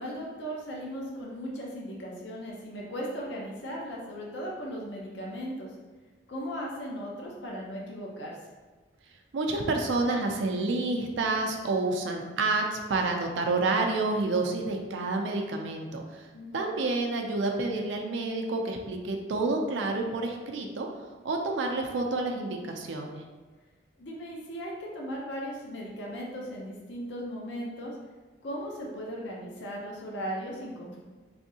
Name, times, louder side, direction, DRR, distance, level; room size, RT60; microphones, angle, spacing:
voice 1, 0.0-5.7 6.3-8.4 16.3-16.6 24.0-28.0 28.4-31.0, equal, 75° left, -2 dB, 0.6 m, -37 dB
voice 2, 9.3-16.3 16.5-20.9 21.2-23.2, right 3 dB, 80° right, 2 dB, 0.4 m, -29 dB
3.4 x 2.6 x 2.7 m, 1.3 s
head